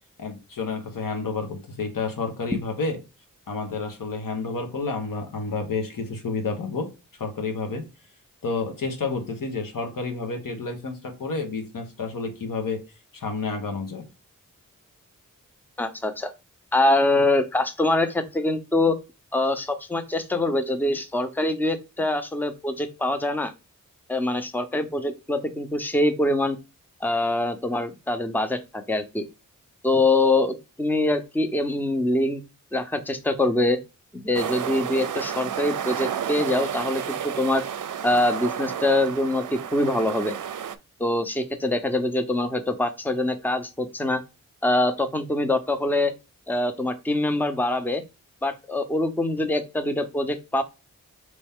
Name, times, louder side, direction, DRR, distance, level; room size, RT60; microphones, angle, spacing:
voice 1, 0.2-3.0 3.5-6.9 7.2-7.8 8.4-12.8 13.1-14.1, left 4 dB, 85° left, 4 dB, 1.3 m, -30 dB
voice 2, 15.8-16.3 16.7-19.0 19.3-23.5 24.1-26.6 27.0-28.6 28.9-29.2 29.8-32.4 32.7-33.8 34.1-37.6 38.0-40.4 41.0-44.2 44.6-46.1 46.5-48.0 48.4-50.6, left 2 dB, 5° left, 9 dB, 0.7 m, -24 dB
sound 1, 34.3-40.8, right 8 dB, 70° right, 0.5 m, -31 dB
4.2 x 3.2 x 3.6 m, 0.27 s
cardioid pair, 55°, 33 cm